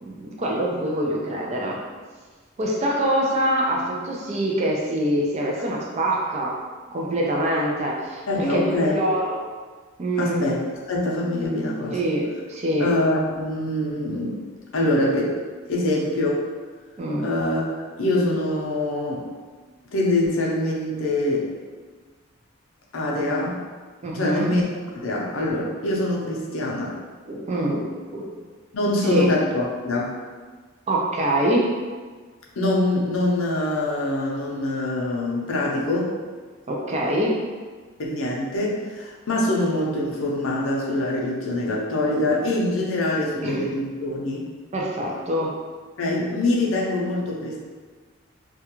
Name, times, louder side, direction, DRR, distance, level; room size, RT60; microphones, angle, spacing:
voice 1, 0.0-1.8 2.6-6.6 6.9-9.4 10.0-10.4 11.9-12.9 17.0-17.3 24.0-24.5 27.3-28.3 29.1-29.3 30.9-31.7 36.7-37.4 43.4-43.7 44.7-45.6, right 1 dB, 30° right, -2 dB, 0.3 m, -24 dB
voice 2, 8.3-9.0 10.2-10.6 10.9-12.0 12.8-14.4 14.7-15.4 15.7-16.4 17.2-17.6 18.0-19.3 19.9-21.5 22.9-23.6 24.1-24.6 25.0-27.0 28.7-30.2 32.6-36.2 38.0-44.5 46.0-47.6, left 1 dB, 70° left, -3 dB, 0.5 m, -24 dB
2.3 x 2.2 x 2.9 m, 1.4 s
head